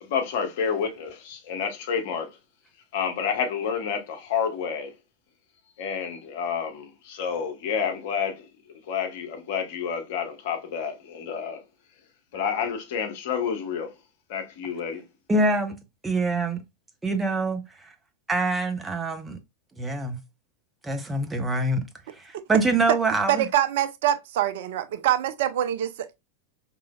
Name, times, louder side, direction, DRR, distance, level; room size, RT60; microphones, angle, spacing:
voice 1, 0.0-2.3 2.9-4.9 5.8-11.6 12.3-13.9 14.3-15.0, left 7 dB, 50° left, 0.9 m, -29 dB
voice 2, 15.3-15.8 16.0-16.6 17.0-17.9 18.3-19.4 19.8-20.2 20.8-21.8 22.2-23.5, right 2 dB, 10° right, 0.7 m, -25 dB
voice 3, 23.3-26.1, right 12 dB, 55° right, 0.4 m, -25 dB
4.9 x 3.0 x 2.2 m
figure-of-eight pair, 90°, 0 cm